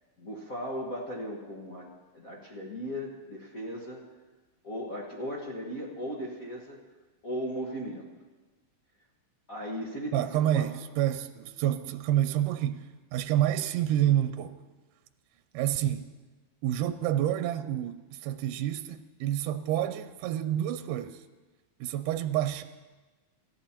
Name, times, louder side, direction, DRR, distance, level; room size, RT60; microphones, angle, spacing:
voice 1, 0.2-1.9 2.1-4.0 4.6-6.8 7.2-8.1 9.5-10.6, equal, 45° left, 1.2 m, -37 dB
voice 2, 10.1-12.9 13.1-14.6 15.5-16.1 16.6-21.2 21.8-22.6, right 12 dB, 85° right, 2.1 m, -28 dB
27.0 x 13.5 x 2.9 m
omnidirectional pair, 3.7 m